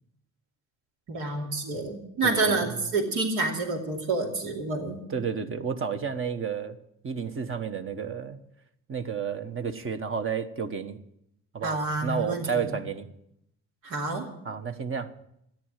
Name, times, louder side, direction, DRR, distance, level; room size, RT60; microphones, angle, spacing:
voice 1, 1.1-5.0 11.6-12.6 13.8-14.3, right 3 dB, 85° right, 1 dB, 2.7 m, -28 dB
voice 2, 2.2-2.8 5.1-6.8 7.0-8.4 8.9-11.0 11.5-13.1 14.4-15.1, right 6 dB, 45° right, 8 dB, 1.2 m, -31 dB
13.5 x 10.0 x 7.4 m, 0.78 s
cardioid pair, 90°, 30 cm